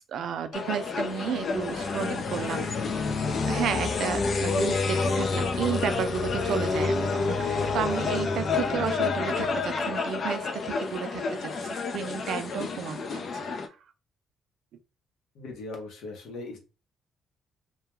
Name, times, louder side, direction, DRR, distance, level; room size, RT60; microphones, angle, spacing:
voice 1, 0.1-2.7 3.5-13.2, right 8 dB, 75° right, 9 dB, 0.4 m, -32 dB
sound 1, 0.5-13.7, left 4 dB, 55° left, 0.5 m, -28 dB
voice 2, 15.4-16.6, left 2 dB, 85° left, 2 dB, 0.8 m, -39 dB
2.3 x 2.2 x 3.0 m, 0.30 s
cardioid pair, 90°, 0 cm